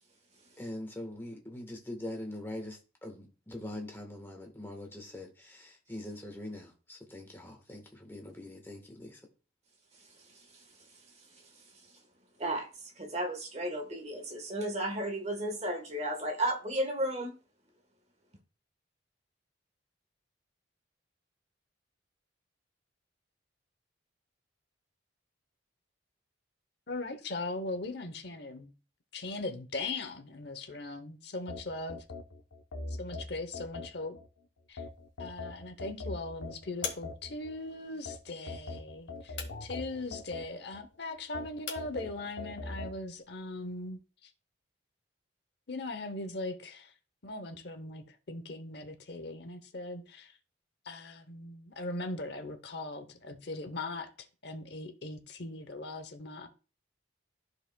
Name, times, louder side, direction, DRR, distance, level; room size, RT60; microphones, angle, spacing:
voice 1, 0.6-9.2, left 1 dB, 10° left, 1.3 m, -43 dB
voice 2, 10.2-10.9 11.3-11.6 12.4-17.4, right 1 dB, 35° right, 1.3 m, -34 dB
voice 3, 26.9-28.7 29.1-32.0 32.9-34.2 34.7-34.8 35.2-44.3 45.7-46.9 47.2-50.4 50.8-54.1 54.4-56.5, left 2 dB, 60° left, 0.9 m, -39 dB
sound 1, 31.5-34.3 34.8-37.5 38.1-40.8 41.3-43.0, left 3 dB, 90° left, 0.9 m, -42 dB
sound 2, 34.7-43.9, left 7 dB, 75° left, 1.8 m, -48 dB
13.5 x 4.9 x 2.3 m
head